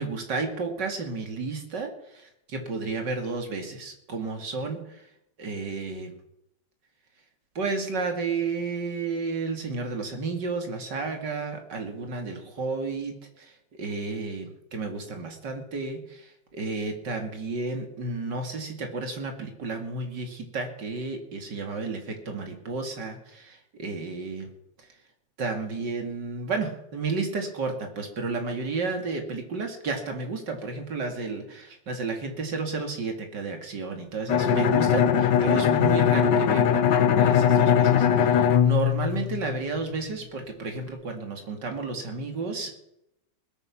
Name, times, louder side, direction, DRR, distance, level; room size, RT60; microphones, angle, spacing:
voice 1, 0.0-4.8 5.4-6.1 7.5-13.5 13.8-24.5 25.4-42.7, right 4 dB, 80° right, 4 dB, 3.0 m, -32 dB
Bowed string instrument, 34.3-40.0, left 8 dB, 85° left, 1.7 m, -21 dB
20.0 x 9.2 x 6.0 m, 0.82 s
omnidirectional pair, 1.8 m